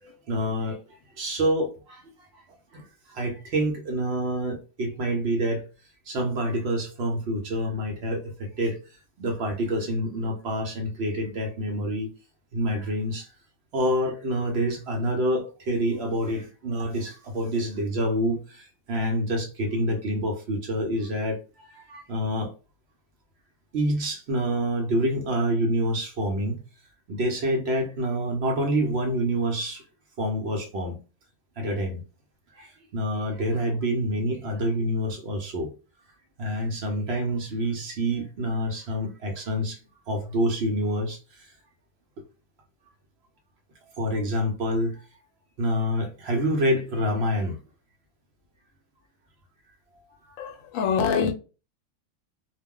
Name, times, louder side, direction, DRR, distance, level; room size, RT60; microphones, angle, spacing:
voice 1, 0.0-2.4 2.7-5.6 6.1-8.8 9.2-12.1 12.5-13.3 13.7-22.5 23.7-26.6 27.1-29.8 30.2-31.0 31.6-32.0 32.5-35.7 36.4-39.8 40.1-41.5 44.0-45.0 45.6-47.6, equal, 60° right, 0.8 m, -27 dB
voice 2, 50.4-51.3, left 6 dB, 80° left, 1.0 m, -25 dB
2.4 x 2.1 x 3.6 m
omnidirectional pair, 1.4 m